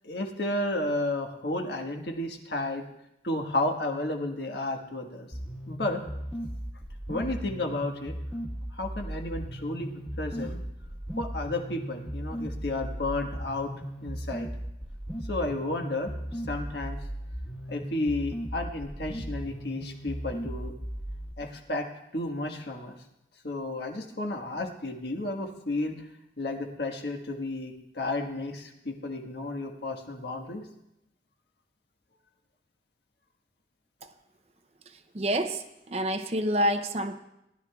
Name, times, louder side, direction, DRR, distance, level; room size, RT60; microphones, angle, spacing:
voice 1, 0.0-2.9 3.2-5.3 5.7-6.0 7.1-8.1 8.7-10.6 11.2-13.7 14.0-14.5 15.3-17.1 17.7-20.7 21.4-23.0 23.4-26.1 26.4-30.7, left 2 dB, 70° left, 3 dB, 1.4 m, -32 dB
sound 1, 5.3-21.3, equal, 5° left, 1.2 m, -37 dB
voice 2, 35.1-37.2, equal, 35° right, 8 dB, 0.5 m, -28 dB
19.5 x 11.5 x 2.3 m, 0.86 s
head